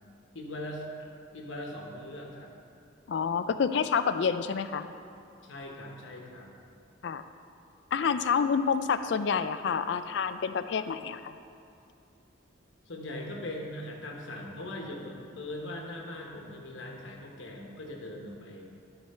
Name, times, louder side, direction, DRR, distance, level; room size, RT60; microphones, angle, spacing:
voice 1, 0.3-2.5 5.4-6.6 12.8-18.7, left 1 dB, 75° left, 0 dB, 1.1 m, -40 dB
voice 2, 3.1-4.9 7.0-7.2 7.9-11.3, left 6 dB, 60° left, 11 dB, 0.3 m, -28 dB
13.0 x 4.6 x 4.3 m, 2.6 s
head